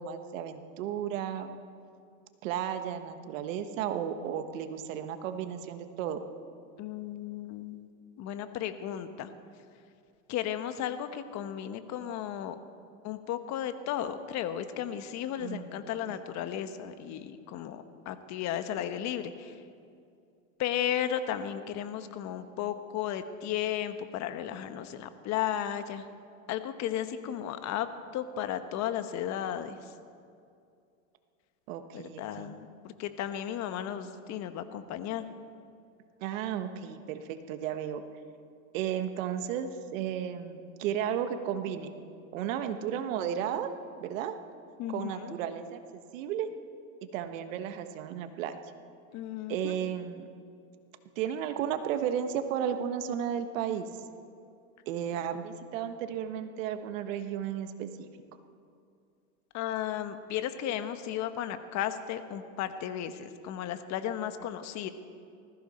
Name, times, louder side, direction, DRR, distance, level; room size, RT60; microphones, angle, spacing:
voice 1, 0.0-1.6 2.4-6.2 15.4-16.2 31.7-32.5 36.2-38.0 38.7-41.9 42.3-43.7 44.0-44.3 44.9-46.5 47.1-48.6 49.5-50.3 51.2-53.9 54.9-58.1, right 9 dB, 70° right, 8 dB, 1.4 m, -34 dB
voice 2, 6.8-7.9 8.2-9.3 10.3-12.6 13.0-19.6 20.6-26.0 26.5-27.9 28.1-29.9 31.9-35.3 44.8-45.4 49.1-49.8 59.5-64.9, left 10 dB, 45° left, 10 dB, 1.1 m, -34 dB
19.5 x 15.0 x 4.3 m, 2.4 s
supercardioid pair, 120°, 40 cm